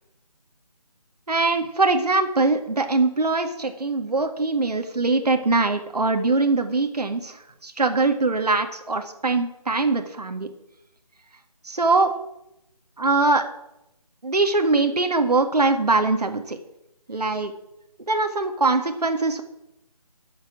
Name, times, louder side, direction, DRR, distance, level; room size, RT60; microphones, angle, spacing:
voice 1, 1.3-10.5 11.6-12.1 13.0-13.4 14.2-16.6 17.1-17.5 18.1-19.4, right 3 dB, 80° right, 6 dB, 1.8 m, -22 dB
10.5 x 7.3 x 8.8 m, 0.85 s
figure-of-eight pair, 165°, 20 cm